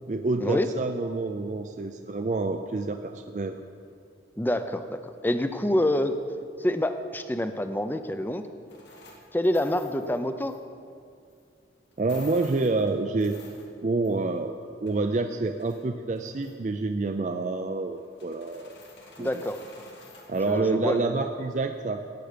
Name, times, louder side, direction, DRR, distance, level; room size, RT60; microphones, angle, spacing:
voice 1, 0.1-3.6 12.0-13.4 13.8-18.7 19.2-19.4 20.3-22.0, right 3 dB, 40° right, 6 dB, 0.4 m, -28 dB
voice 2, 4.4-6.2 6.6-8.4 9.3-10.6 19.2-19.6 20.4-21.2, left 1 dB, 10° left, 9 dB, 0.5 m, -27 dB
sound 1, 8.7-10.6 11.3-11.4 11.9-14.4 14.6-15.8 16.2-16.7 18.0-20.6, left 3 dB, 80° left, 2.2 m, -51 dB
16.5 x 9.3 x 5.1 m, 2.3 s
head